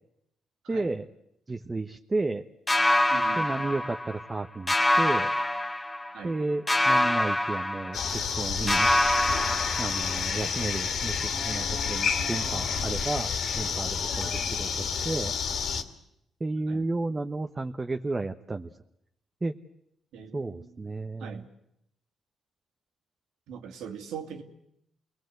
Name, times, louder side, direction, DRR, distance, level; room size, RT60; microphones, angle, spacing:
voice 1, 0.7-1.0 1.5-2.4 3.4-5.3 6.2-8.9 9.8-13.3 13.6-15.3 16.4-18.7 19.4-19.5 20.3-21.4, right 2 dB, 20° right, 6 dB, 1.0 m, -32 dB
sound 1, 2.7-4.4 4.7-6.3 6.7-8.4 8.7-10.4, left 1 dB, 15° left, 1.4 m, -25 dB
voice 2, 3.1-3.5 6.1-6.3 14.1-14.4 16.7-16.9 20.1-20.7 21.2-21.5 23.5-24.4, right 7 dB, 85° right, 6 dB, 2.5 m, -41 dB
sound 2, 7.9-15.8, left 6 dB, 65° left, 2.5 m, -29 dB
28.0 x 21.0 x 8.0 m, 0.79 s
cardioid pair, 90°, 0 cm